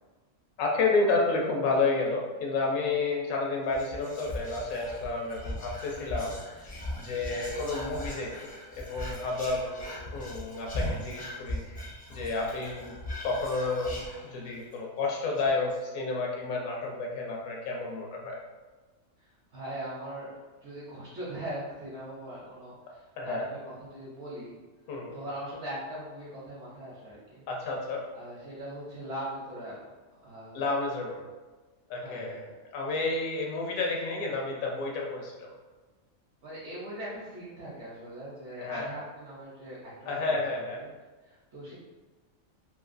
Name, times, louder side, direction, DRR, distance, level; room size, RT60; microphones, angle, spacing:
voice 1, 0.6-6.4 6.7-11.8 12.1-13.0 13.2-18.4 23.2-23.5 24.9-25.2 27.5-28.0 30.5-31.2 31.9-32.5 32.7-35.5 38.6-38.9 40.1-40.8, left 3 dB, 85° left, -1 dB, 1.1 m, -31 dB
Whispering, 3.7-14.7 15.0-15.1 15.4-15.8, left 1 dB, 45° left, 0.5 m, -39 dB
voice 2, 19.5-20.3 20.6-24.5 25.1-27.5 28.1-29.8 30.2-30.6 32.0-32.5 36.4-40.9 41.2-41.7, right 1 dB, 60° right, -8 dB, 1.0 m, -40 dB
3.0 x 2.5 x 2.5 m, 1.3 s
omnidirectional pair, 1.4 m